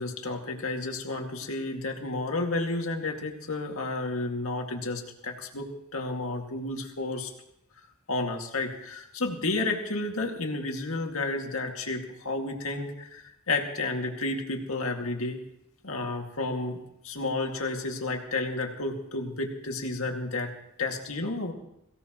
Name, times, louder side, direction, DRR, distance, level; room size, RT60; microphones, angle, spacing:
voice 1, 0.0-5.7 5.9-7.3 8.1-15.4 15.8-16.8 17.0-20.5 20.8-21.5, left 2 dB, 85° left, 2 dB, 2.2 m, -31 dB
22.5 x 17.0 x 3.1 m, 0.81 s
head